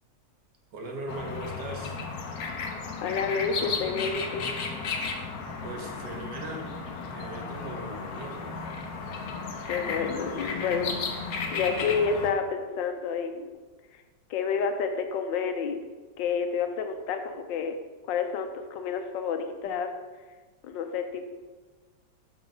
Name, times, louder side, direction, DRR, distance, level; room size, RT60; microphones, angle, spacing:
voice 1, 0.7-2.0 5.6-8.5, right 2 dB, 65° right, 1 dB, 1.6 m, -39 dB
sound 1, 1.1-12.3, left 4 dB, 60° left, 1.1 m, -34 dB
voice 2, 3.0-4.5 9.6-11.2 11.5-13.5 14.3-15.8 16.2-17.8 18.1-19.9 20.6-21.2, left 6 dB, 80° left, 7 dB, 1.3 m, -29 dB
5.9 x 5.8 x 5.0 m, 1.3 s
omnidirectional pair, 2.0 m